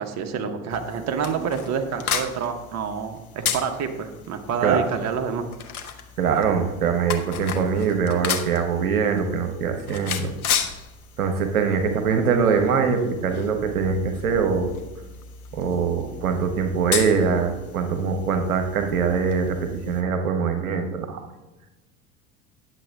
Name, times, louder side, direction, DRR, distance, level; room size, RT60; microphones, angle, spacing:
voice 1, 0.0-5.4, right 6 dB, 40° right, 6 dB, 1.1 m, -28 dB
sound 1, 0.7-20.0, left 7 dB, 80° left, 1.0 m, -34 dB
voice 2, 6.2-10.3 11.2-14.7 15.5-21.2, right 6 dB, 75° right, 6 dB, 1.0 m, -23 dB
9.9 x 7.5 x 3.5 m, 1.1 s
figure-of-eight pair, 75°, 43 cm